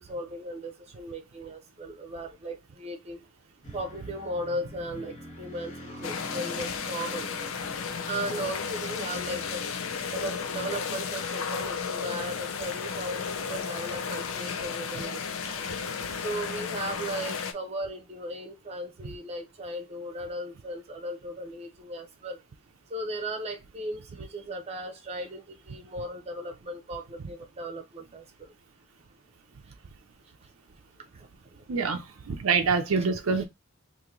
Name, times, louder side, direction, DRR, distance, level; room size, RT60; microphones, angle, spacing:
voice 1, 0.0-3.2 3.7-7.3 8.0-9.6 10.1-15.6 16.2-22.4 22.9-28.5 31.2-31.3 33.0-33.1 33.3-33.4, right 1 dB, 30° right, 0.7 m, -37 dB
sound 1, 3.6-10.7, left 1 dB, 35° left, 1.1 m, -45 dB
sound 2, 6.0-17.5, left 6 dB, 80° left, 0.6 m, -33 dB
voice 2, 31.7-33.4, right 5 dB, 75° right, 0.5 m, -26 dB
2.9 x 2.7 x 3.6 m
head